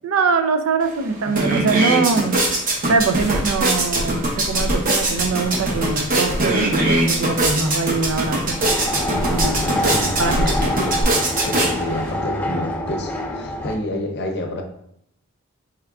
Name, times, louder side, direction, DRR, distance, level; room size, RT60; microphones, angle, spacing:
voice 1, 0.0-2.4 2.9-8.8 9.3-10.5, right 4 dB, 80° right, 7 dB, 0.4 m, -23 dB
sound 1, 0.8-0.9 1.2-12.1, right 2 dB, 40° right, 0.9 m, -22 dB
sound 2, 3.0-11.0, equal, 15° right, 0.7 m, -30 dB
sound 3, 8.5-13.8, left 1 dB, 10° left, 0.3 m, -26 dB
voice 2, 9.7-14.6, left 1 dB, 55° left, 3 dB, 0.6 m, -29 dB
4.4 x 3.5 x 2.3 m, 0.73 s
head